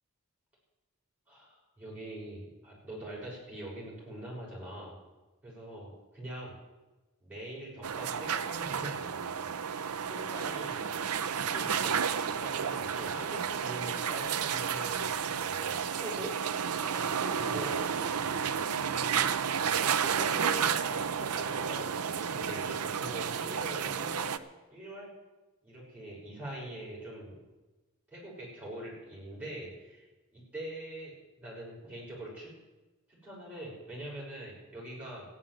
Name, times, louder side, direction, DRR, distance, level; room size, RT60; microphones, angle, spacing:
voice 1, 1.3-4.9 5.4-6.5 7.2-9.0 10.0-10.9 11.3-12.0 12.4-15.0 15.3-16.4 16.8-17.8 18.8-19.4 19.8-25.1 25.6-27.4 28.1-30.0 30.3-32.5 33.1-35.2, right 1 dB, 5° right, -6 dB, 6.1 m, -43 dB
sound 1, 7.8-24.4, right 7 dB, 85° right, 0.7 m, -31 dB
14.5 x 9.6 x 7.5 m, 1.1 s
head